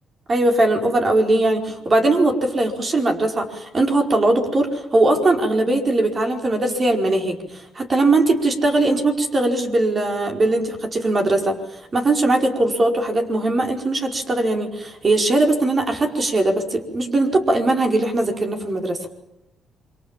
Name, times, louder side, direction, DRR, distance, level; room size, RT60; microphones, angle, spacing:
voice 1, 0.3-11.6 11.9-19.0, right 2 dB, 35° right, 4 dB, 4.7 m, -20 dB
28.0 x 24.0 x 7.5 m, 0.90 s
cardioid pair, 90°, 0 cm